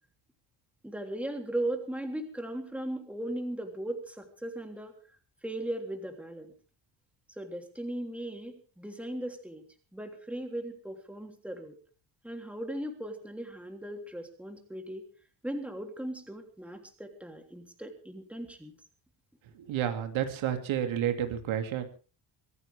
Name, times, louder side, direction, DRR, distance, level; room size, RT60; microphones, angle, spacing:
voice 1, 0.8-4.9 5.4-6.5 7.4-9.6 9.9-11.7 12.2-15.1 15.4-18.7, right 1 dB, 5° right, 4 dB, 3.3 m, -37 dB
voice 2, 19.6-21.8, right 10 dB, 80° right, 6 dB, 2.8 m, -30 dB
24.0 x 15.5 x 3.6 m, 0.37 s
cardioid pair, 135°, 47 cm